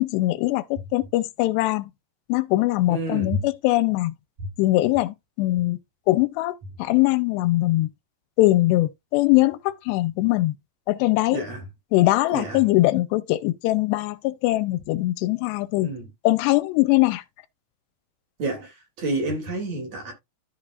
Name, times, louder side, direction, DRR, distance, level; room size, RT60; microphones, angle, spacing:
voice 1, 0.0-1.9 2.3-4.1 4.6-5.8 6.1-7.9 8.4-10.6 10.9-11.4 11.9-15.9 16.2-17.2, left 18 dB, 85° left, 2.8 m, -21 dB
voice 2, 2.9-3.4 11.3-11.6 12.3-12.6 15.8-16.1 18.4-20.1, right 1 dB, 45° right, 3.7 m, -29 dB
13.5 x 5.0 x 2.5 m
omnidirectional pair, 4.8 m